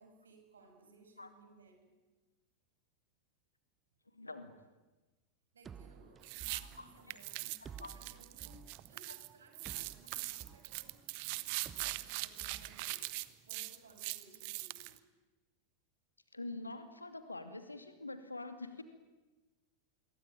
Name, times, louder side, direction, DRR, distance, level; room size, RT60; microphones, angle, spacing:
voice 1, 0.0-2.0 5.5-13.1 13.4-15.0, right 2 dB, 70° right, 5 dB, 6.5 m, -62 dB
voice 2, 4.1-4.5 6.5-7.2 7.6-8.0 16.3-18.8, left 2 dB, 80° left, 9 dB, 2.6 m, -46 dB
sound 1, 5.6-13.6, right 7 dB, 20° right, 0.9 m, -55 dB
sound 2, 6.2-6.6 7.1-9.3 9.5-15.0, right 22 dB, 45° right, 1.2 m, -41 dB
27.0 x 23.0 x 9.2 m, 1.2 s
figure-of-eight pair, 90°, 0 cm